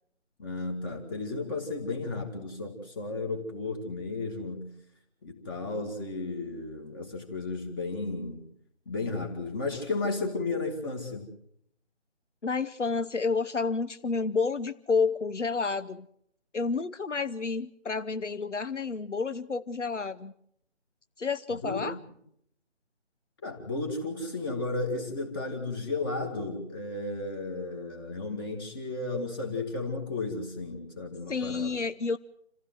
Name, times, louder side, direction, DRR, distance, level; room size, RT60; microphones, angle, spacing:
voice 1, 0.4-4.7 5.2-8.4 8.9-11.3 21.5-21.9 23.4-31.8, left 3 dB, 20° left, 3 dB, 2.2 m, -34 dB
voice 2, 12.4-16.1 16.5-20.3 21.2-22.0 31.3-32.2, left 4 dB, 85° left, 13 dB, 0.9 m, -30 dB
27.5 x 15.5 x 7.7 m, 0.72 s
figure-of-eight pair, 155°, 35 cm